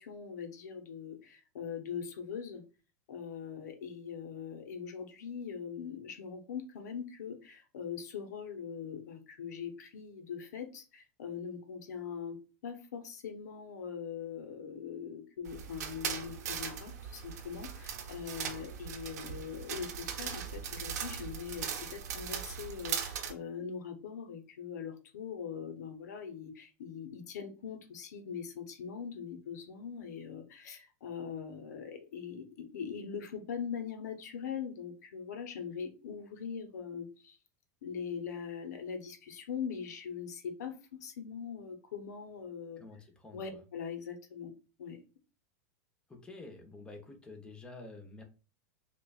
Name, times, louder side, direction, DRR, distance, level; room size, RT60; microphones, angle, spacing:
voice 1, 0.0-2.6 3.1-37.4 37.8-42.8 43.3-44.5 44.8-45.0, left 7 dB, 80° left, 6 dB, 0.8 m, -42 dB
sound 1, 15.5-23.3, right 7 dB, 75° right, 0.8 m, -39 dB
voice 2, 42.8-43.6 46.1-48.2, left 3 dB, 10° left, 2 dB, 0.9 m, -49 dB
6.4 x 2.3 x 2.4 m, 0.34 s
hypercardioid pair, 115°, 9 cm